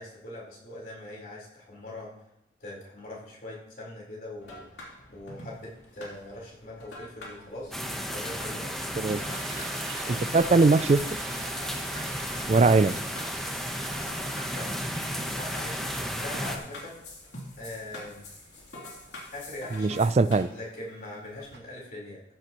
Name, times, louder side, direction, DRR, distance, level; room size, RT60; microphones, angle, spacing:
voice 1, 0.0-2.1 2.6-4.7 5.1-8.8 14.5-14.9 15.1-17.0 17.6-18.2 19.3-20.1 20.5-22.2, left 1 dB, 50° left, -4 dB, 4.3 m, -42 dB
sound 1, 4.4-20.4, left 1 dB, 75° left, 3.3 m, -46 dB
sound 2, 7.7-16.6, equal, ahead, 1.1 m, -33 dB
Toilet flush, 9.1-16.9 17.3-21.6, right 4 dB, 75° right, 2.4 m, -46 dB
voice 2, 10.1-11.0 12.5-13.0 19.7-20.5, right 3 dB, 40° right, 15 dB, 0.4 m, -21 dB
14.5 x 9.7 x 3.1 m, 0.86 s
head